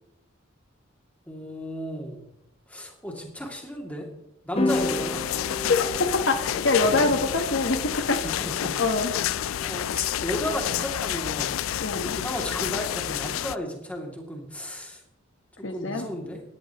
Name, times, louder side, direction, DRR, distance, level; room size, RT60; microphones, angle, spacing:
voice 1, 1.3-2.2 2.7-4.1 4.4-5.2 6.8-7.2 8.2-8.7 9.6-11.7 12.1-15.0 15.6-16.4, equal, 5° left, 0 dB, 2.4 m, -34 dB
sound 1, 4.6-13.0, left 1 dB, 30° left, 1.1 m, -35 dB
sound 2, 4.7-13.6, left 11 dB, 90° left, 0.4 m, -29 dB
voice 2, 6.1-8.2 8.8-9.1 11.8-12.1 15.6-16.0, left 3 dB, 65° left, 5 dB, 1.2 m, -24 dB
17.5 x 11.5 x 3.0 m, 0.84 s
head